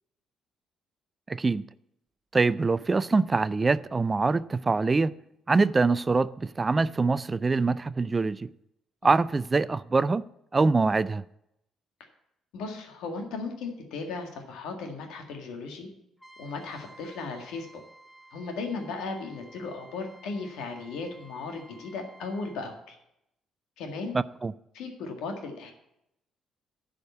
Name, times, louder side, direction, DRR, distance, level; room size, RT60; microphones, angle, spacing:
voice 1, 1.3-1.6 2.3-5.1 5.5-8.5 9.0-10.2 10.5-11.2 24.4-24.5, right 3 dB, 30° right, 0.3 m, -24 dB
voice 2, 12.5-15.9 16.4-17.8 18.3-22.9 23.8-24.1 24.7-25.7, left 4 dB, 80° left, 1.8 m, -36 dB
Trumpet, 16.2-22.6, right 2 dB, ahead, 1.6 m, -53 dB
10.5 x 5.1 x 8.3 m
supercardioid pair, 70°, 0 cm